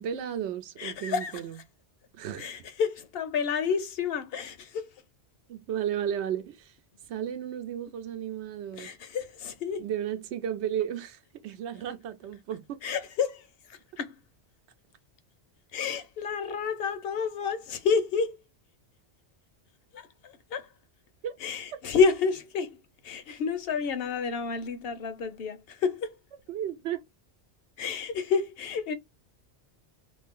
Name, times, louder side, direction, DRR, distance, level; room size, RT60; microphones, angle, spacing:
voice 1, 0.0-1.6 2.1-2.5 5.5-6.7 7.1-8.9 9.8-12.8 21.2-21.4 26.5-27.0, right 9 dB, 85° right, 0.9 m, -34 dB
voice 2, 0.8-1.4 2.4-5.0 8.7-9.8 12.8-14.2 15.7-18.4 19.9-20.7 21.4-26.2 27.8-28.9, left 5 dB, 70° left, 0.8 m, -30 dB
2.6 x 2.6 x 3.5 m
omnidirectional pair, 1.1 m